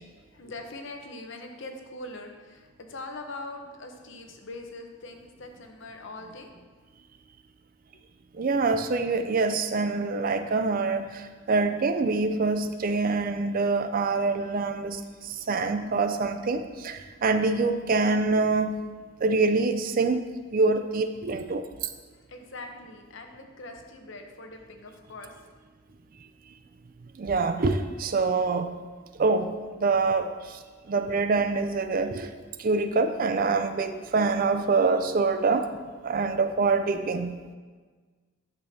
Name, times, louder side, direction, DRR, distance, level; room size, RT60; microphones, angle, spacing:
voice 1, 0.1-6.5 7.9-8.0 8.7-8.8 10.4-10.7 22.1-25.6, left 2 dB, 60° left, 4 dB, 0.9 m, -42 dB
voice 2, 8.3-18.8 19.2-21.9 27.2-28.8 29.2-30.6 30.9-32.3 32.6-35.7 36.0-37.4, right 3 dB, 40° right, 9 dB, 0.4 m, -25 dB
10.5 x 6.8 x 2.8 m, 1.4 s
head